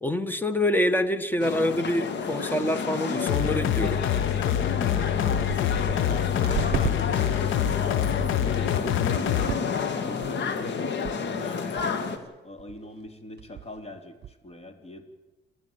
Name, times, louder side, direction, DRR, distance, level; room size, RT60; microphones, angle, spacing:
voice 1, 0.0-4.0, left 1 dB, 10° left, 12 dB, 1.6 m, -26 dB
sound 1, 1.0-1.1 1.6-1.7 1.9-2.3 2.6-2.9 3.5-3.6 4.2-4.3 4.6-7.0 7.3-7.8 8.2-8.4 8.8-9.2 9.5-9.9 10.2-10.6 11.0-11.2 11.4-11.5 11.8-12.1 12.6-12.8 13.0-13.1 13.4-13.8 14.2-14.3, right 10 dB, 55° right, 0.8 m, -35 dB
sound 2, 1.4-12.2, left 5 dB, 65° left, 2.5 m, -30 dB
sound 3, 3.3-9.5, left 12 dB, 85° left, 0.9 m, -26 dB
voice 2, 5.3-9.6 9.9-12.0 12.4-15.0, left 1 dB, 30° left, 6 dB, 3.5 m, -43 dB
29.0 x 12.0 x 8.9 m, 1.1 s
cardioid pair, 90°, 20 cm